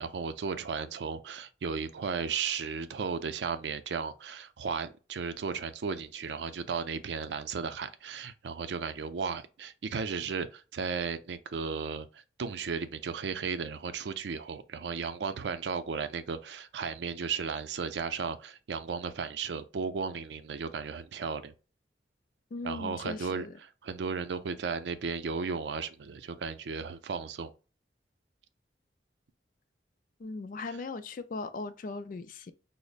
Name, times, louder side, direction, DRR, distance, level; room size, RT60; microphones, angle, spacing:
voice 1, 0.0-21.5 22.6-27.5, right 5 dB, 75° right, 0.4 m, -35 dB
voice 2, 22.5-23.6 30.2-32.5, left 3 dB, 50° left, 0.3 m, -39 dB
5.0 x 2.0 x 2.4 m
head